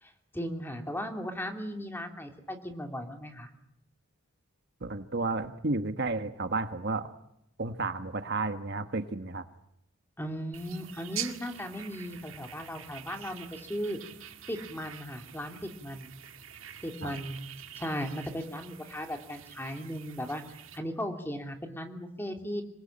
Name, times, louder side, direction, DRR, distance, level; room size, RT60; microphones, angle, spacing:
voice 1, 0.0-3.5 10.2-14.0 14.5-16.1 16.8-17.4 17.8-20.4 20.7-22.6, equal, 10° left, 5 dB, 2.9 m, -37 dB
voice 2, 4.8-7.1 7.6-9.4 17.0-17.2, right 3 dB, 55° right, 9 dB, 1.4 m, -32 dB
sound 1, 10.5-20.8, right 10 dB, 80° right, 2.1 m, -45 dB
26.5 x 21.0 x 8.8 m, 0.79 s
head